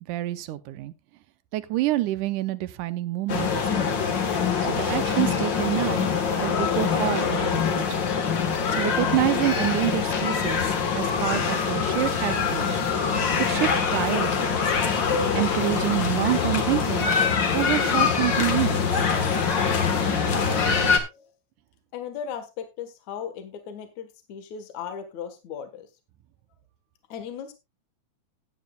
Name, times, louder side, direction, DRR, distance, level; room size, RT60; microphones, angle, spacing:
voice 1, 0.1-0.9 1.5-4.0 4.7-6.1 6.4-8.1 8.7-12.8 13.4-14.7 15.3-17.1 17.5-19.1, right 16 dB, 80° right, 2.1 m, -27 dB
sound 1, 3.3-21.0, left 6 dB, 45° left, 1.7 m, -24 dB
voice 2, 20.6-21.3 21.9-25.9 27.1-27.5, left 8 dB, 65° left, 2.7 m, -37 dB
16.0 x 9.5 x 2.3 m
omnidirectional pair, 3.6 m